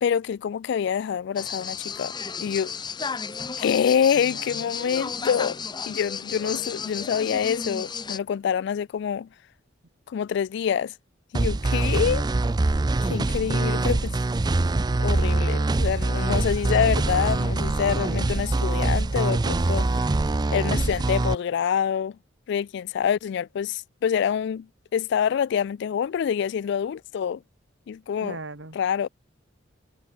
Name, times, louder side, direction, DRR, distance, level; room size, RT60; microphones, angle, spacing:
voice 1, 0.0-2.1 2.4-2.7 3.6-5.6 5.9-9.3 10.1-10.9 11.3-12.3 13.0-14.2 15.0-20.1 20.5-22.2 22.5-27.4 27.9-28.4 28.7-29.1, left 8 dB, 65° left, 0.3 m, -26 dB
sound 1, 1.4-8.2, left 5 dB, 25° left, 0.7 m, -33 dB
voice 2, 4.1-4.7 6.3-6.6 13.4-14.1 28.2-28.8, right 2 dB, 70° right, 1.9 m, -40 dB
sound 2, 11.3-21.3, right 2 dB, 20° right, 0.4 m, -24 dB
head